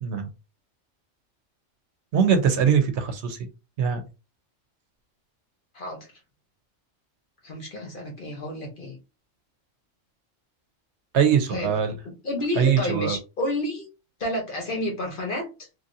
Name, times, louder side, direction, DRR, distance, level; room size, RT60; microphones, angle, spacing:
voice 1, 2.1-3.4 3.8-4.0 11.1-12.0 12.6-13.2, right 7 dB, 70° right, 0.9 m, -22 dB
voice 2, 5.7-6.1 7.4-9.0 11.5-11.7 12.2-13.9 14.2-15.7, left 1 dB, 45° left, 1.0 m, -30 dB
3.1 x 2.6 x 2.6 m
omnidirectional pair, 1.3 m